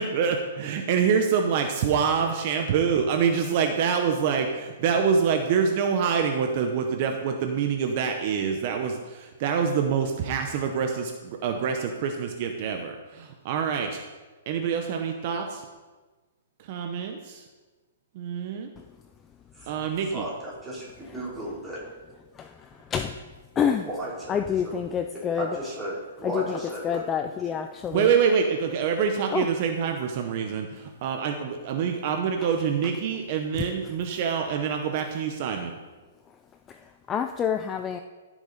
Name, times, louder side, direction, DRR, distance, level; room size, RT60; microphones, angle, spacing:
voice 1, 0.0-14.0 14.5-15.6 16.6-17.4 18.1-18.7 19.7-20.2 27.9-35.8, right 6 dB, 40° right, 4 dB, 0.8 m, -26 dB
voice 2, 20.0-21.8 23.6-24.8 25.1-27.4, right 1 dB, 5° right, -8 dB, 3.0 m, -35 dB
voice 3, 22.3-23.2 23.6-23.8 24.3-25.5 26.2-26.6 26.8-28.1 29.3-29.5 36.7-36.8 37.1-38.0, left 8 dB, 15° left, 7 dB, 0.3 m, -27 dB
14.5 x 6.0 x 4.0 m, 1.3 s
hypercardioid pair, 160°, 0 cm